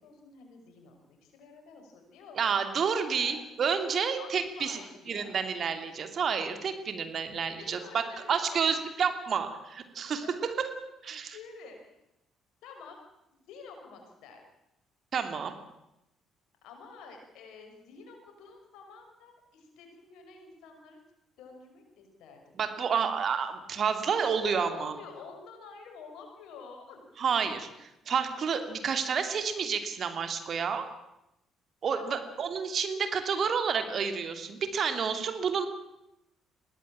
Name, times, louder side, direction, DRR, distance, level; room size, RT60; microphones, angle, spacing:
voice 1, 0.0-2.5 3.1-3.4 3.8-5.4 7.5-8.9 10.2-10.3 11.2-12.0 12.6-13.0 13.3-14.4 16.6-21.0 21.4-22.6 24.0-27.1 27.4-27.5 31.9-32.2, left 4 dB, 65° left, 3 dB, 5.9 m, -49 dB
voice 2, 2.3-4.8 5.1-10.5 11.0-11.4 15.1-15.5 22.6-24.9 27.2-27.7 28.1-30.9 31.8-35.7, right 6 dB, 50° right, 8 dB, 2.8 m, -30 dB
21.5 x 17.5 x 8.8 m, 0.88 s
hypercardioid pair, 50°, 0 cm